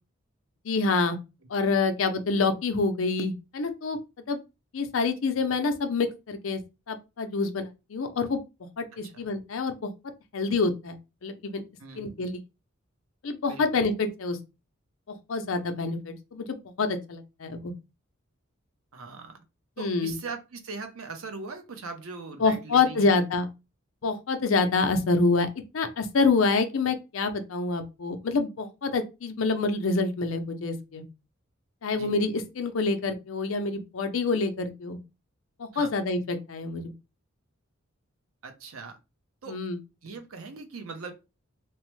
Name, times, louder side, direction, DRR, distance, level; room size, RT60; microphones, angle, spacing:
voice 1, 0.6-1.2 1.5-4.0 4.3-4.4 4.7-6.6 6.9-8.4 8.8-9.9 10.3-11.6 12.0-12.4 13.2-14.4 15.3-17.7 19.8-20.1 22.4-23.5 24.0-25.5 25.7-31.1 31.8-35.0 35.6-36.9 39.5-39.8, left 3 dB, 70° left, 0.5 m, -27 dB
voice 2, 8.9-9.3 11.8-12.1 13.5-13.8 18.9-19.4 19.8-23.2 31.9-32.1 35.7-35.9 38.4-39.0 39.4-39.6 40.0-41.1, right 4 dB, 85° right, 0.6 m, -40 dB
3.0 x 2.0 x 3.0 m
head